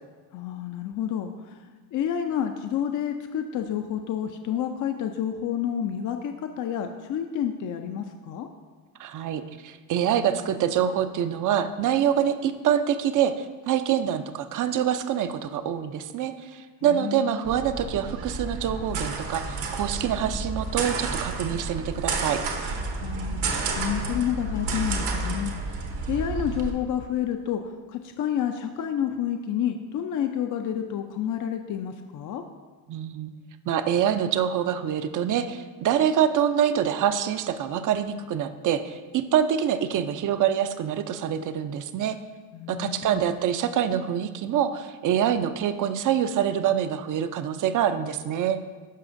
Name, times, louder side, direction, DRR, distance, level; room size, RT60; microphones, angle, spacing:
voice 1, 0.3-8.5 16.8-17.5 23.0-32.4 42.5-43.4, left 9 dB, 50° left, 6 dB, 0.5 m, -30 dB
voice 2, 9.0-22.4 32.9-33.3 33.7-42.2 42.7-48.6, right 9 dB, 50° right, 11 dB, 0.6 m, -25 dB
sound 1, 17.4-26.7, right 3 dB, 70° right, 1.1 m, -31 dB
13.0 x 4.9 x 2.6 m, 1.4 s
supercardioid pair, 85°, 40 cm